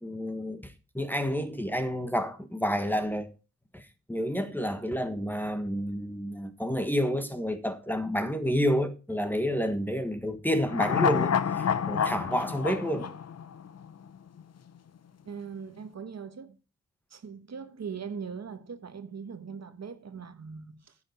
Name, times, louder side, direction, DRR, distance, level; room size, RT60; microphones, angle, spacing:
voice 1, 0.0-3.3 3.7-13.2, equal, 5° left, 1.3 m, -29 dB
sound 1, 10.7-14.1 14.4-14.5, left 7 dB, 55° left, 0.8 m, -28 dB
voice 2, 15.2-16.6 17.1-21.0, right 6 dB, 60° right, 1.3 m, -40 dB
10.5 x 7.0 x 5.2 m
wide cardioid pair, 105°, 30 cm